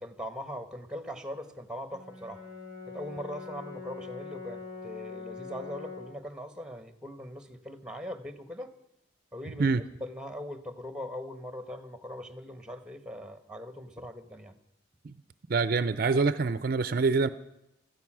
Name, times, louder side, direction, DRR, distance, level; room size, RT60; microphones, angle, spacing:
voice 1, 0.0-2.4 2.9-8.7 9.3-14.6, left 1 dB, 5° right, 10 dB, 1.1 m, -41 dB
Brass instrument, 1.9-6.2, left 4 dB, 25° left, 6.5 m, -43 dB
voice 2, 15.5-17.3, right 4 dB, 50° right, 14 dB, 0.5 m, -25 dB
16.0 x 13.5 x 6.1 m, 0.86 s
head